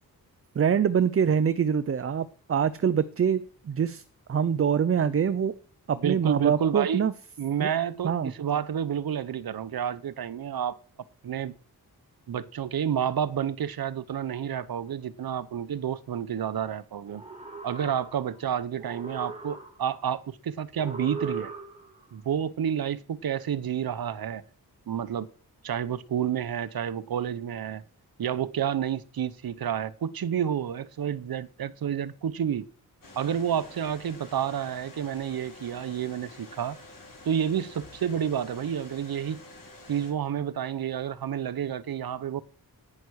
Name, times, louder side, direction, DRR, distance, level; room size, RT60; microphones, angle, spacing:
voice 1, 0.5-4.0 4.3-5.5 5.9-7.1 7.6-7.7 8.0-8.3, right 7 dB, 40° right, 0.5 m, -24 dB
voice 2, 6.0-7.0 7.4-10.8 11.2-11.5 12.3-17.2 17.6-21.5 22.1-24.4 24.9-25.3 25.6-27.8 28.2-32.7 33.2-36.8 37.2-39.4 39.9-42.4, right 9 dB, 70° right, 0.8 m, -30 dB
sound 1, 17.0-18.4 18.8-20.0 20.7-22.0, right 4 dB, 15° right, 2.5 m, -39 dB
sound 2, 33.0-40.1, left 2 dB, 60° left, 3.8 m, -49 dB
11.0 x 9.7 x 4.7 m
wide cardioid pair, 155°, 37 cm